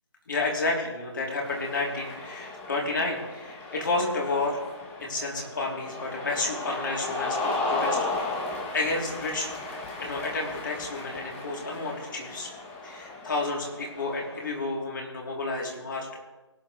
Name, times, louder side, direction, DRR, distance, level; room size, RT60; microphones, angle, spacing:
voice 1, 0.3-4.6 5.0-9.5 10.0-12.5 12.8-16.2, left 2 dB, 45° left, -1 dB, 3.3 m, -31 dB
Cheering, 1.2-14.7, left 3 dB, 10° left, 1.0 m, -35 dB
23.0 x 9.5 x 3.3 m, 1.1 s
figure-of-eight pair, 160°, 15 cm